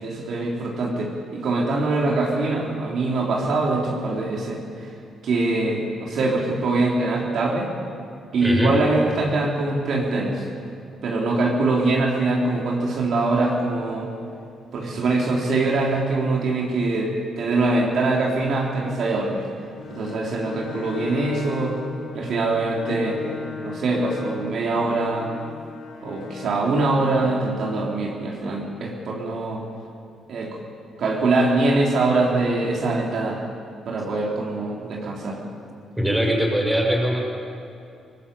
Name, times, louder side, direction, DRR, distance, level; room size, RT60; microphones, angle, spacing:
voice 1, 0.0-4.9 5.2-7.7 8.3-10.5 11.0-14.1 14.7-19.4 19.9-21.8 22.1-23.2 23.6-25.3 26.0-29.7 30.3-30.6 31.0-33.4 33.9-35.4, right 2 dB, 65° right, -2 dB, 3.9 m, -23 dB
voice 2, 8.4-8.7 36.0-37.2, equal, 5° right, -1 dB, 7.0 m, -21 dB
Bowed string instrument, 19.7-26.8, left 6 dB, 90° left, 4.1 m, -37 dB
23.0 x 19.0 x 8.6 m, 2.6 s
cardioid pair, 90°, 0 cm